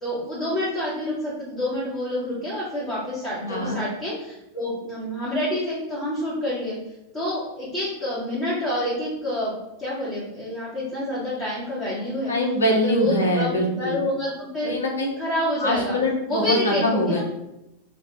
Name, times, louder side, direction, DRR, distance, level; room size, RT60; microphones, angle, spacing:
voice 1, 0.0-6.8 7.1-9.5 9.8-12.3 12.7-14.7 15.2-16.0 16.3-17.2, left 1 dB, 25° left, -10 dB, 1.3 m, -28 dB
voice 2, 3.5-3.8 12.3-14.0 14.6-15.1 15.6-17.2, left 1 dB, 70° left, 0 dB, 0.8 m, -23 dB
2.8 x 2.5 x 3.4 m, 0.89 s
figure-of-eight pair, 90°, 0 cm